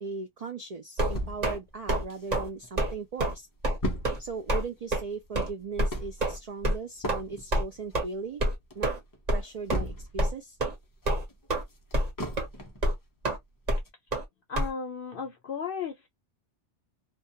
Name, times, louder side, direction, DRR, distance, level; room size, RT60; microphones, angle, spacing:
voice 1, 0.0-3.5 4.2-8.4 8.7-8.9 9.3-10.6, right 4 dB, 70° right, 0.3 m, -38 dB
sound 1, 1.0-1.6 1.9-2.0 2.3-2.5 2.8-2.9 3.2-3.3 3.6-3.8 4.0-4.2 4.5-4.6 4.9-5.0 5.4-5.5 5.8-5.9 6.2-6.4 6.6-6.8 7.1-7.2 7.5-7.6 7.9-8.0 8.4-8.6 8.8-9.0 9.3-9.4 9.7-9.8 10.2-10.3 10.6-10.8 11.1-11.6 11.9-12.1 12.4-12.5 12.8-13.0 13.2-13.4 13.7-13.8 14.1-14.2 14.6-14.7, right 1 dB, 40° right, 1.0 m, -26 dB
sound 2, 1.1-2.7 3.1-3.2 3.3-10.4 10.7-12.9 13.3-13.4 13.8-13.9, equal, 35° left, 0.3 m, -37 dB
voice 2, 14.5-16.1, left 6 dB, 60° left, 0.7 m, -35 dB
2.3 x 2.1 x 2.6 m
omnidirectional pair, 1.2 m